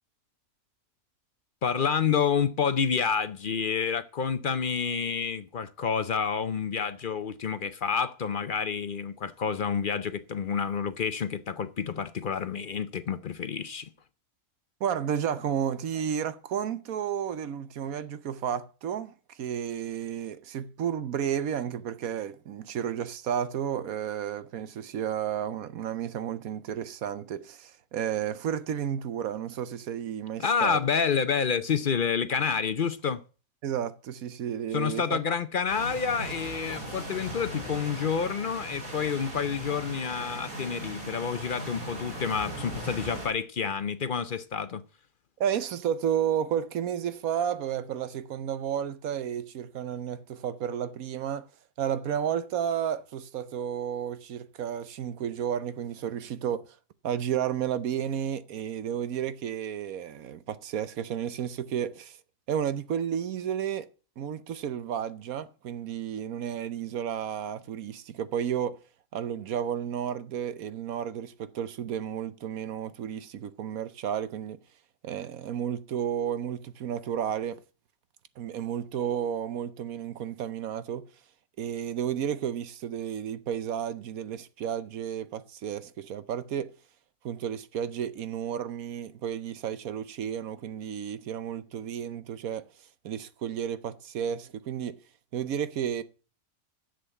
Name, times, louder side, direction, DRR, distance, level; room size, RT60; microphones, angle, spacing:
voice 1, 1.6-13.9 30.4-33.2 34.7-44.8, left 6 dB, 50° left, 0.6 m, -29 dB
voice 2, 14.8-30.8 33.6-35.2 45.4-51.5 51.8-56.8 57.0-62.2 62.5-63.9 64.2-68.8 69.1-74.6 75.0-77.6 78.4-81.0 81.6-86.7 87.2-95.0 95.3-96.0, right 9 dB, 75° right, 1.2 m, -32 dB
sound 1, 35.7-43.3, right 1 dB, 35° right, 4.1 m, -38 dB
10.0 x 7.7 x 8.0 m
omnidirectional pair, 1.5 m